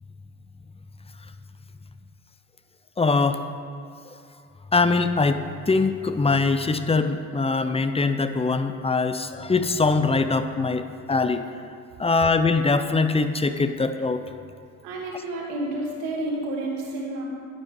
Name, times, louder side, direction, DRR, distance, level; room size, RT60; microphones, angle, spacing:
voice 1, 3.0-3.4 4.7-11.4 12.0-14.2, left 3 dB, 15° left, 10 dB, 0.7 m, -22 dB
voice 2, 14.8-17.3, right 1 dB, 80° right, -2 dB, 2.0 m, -30 dB
11.0 x 9.2 x 3.8 m, 2.5 s
hypercardioid pair, 50°, 43 cm